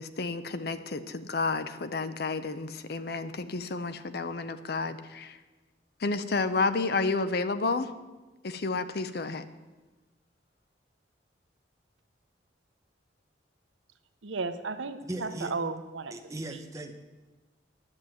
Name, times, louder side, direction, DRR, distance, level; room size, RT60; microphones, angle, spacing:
voice 1, 0.0-5.4 6.0-7.9 8.4-9.5, left 3 dB, 55° left, 12 dB, 0.6 m, -31 dB
voice 2, 14.2-16.1, right 4 dB, 90° right, 10 dB, 0.8 m, -34 dB
voice 3, 15.0-15.5 16.1-16.9, right 1 dB, 15° right, 4 dB, 0.9 m, -38 dB
10.5 x 7.4 x 7.7 m, 1.2 s
head